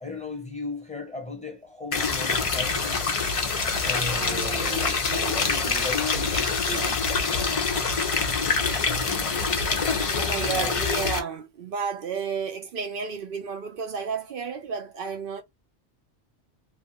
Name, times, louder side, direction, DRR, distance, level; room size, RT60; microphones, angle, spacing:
voice 1, 0.0-3.2 3.8-4.8 5.3-6.7 8.7-9.3 10.4-10.7, left 3 dB, 5° left, 0.9 m, -37 dB
sound 1, 1.9-11.2, left 4 dB, 45° left, 0.4 m, -25 dB
voice 2, 4.1-5.9 6.7-7.1 10.1-15.4, right 6 dB, 60° right, 0.6 m, -33 dB
2.6 x 2.4 x 2.7 m
omnidirectional pair, 1.2 m